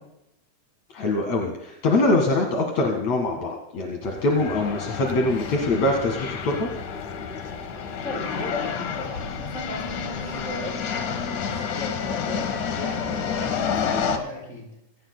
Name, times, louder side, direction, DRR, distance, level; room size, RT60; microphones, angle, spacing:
voice 1, 0.9-6.7, left 2 dB, 70° left, 1 dB, 3.1 m, -23 dB
sound 1, 4.0-14.2, left 6 dB, 85° left, 2.8 m, -30 dB
voice 2, 8.0-14.7, left 2 dB, 25° left, -3 dB, 8.4 m, -36 dB
24.5 x 18.0 x 2.2 m, 0.82 s
omnidirectional pair, 3.4 m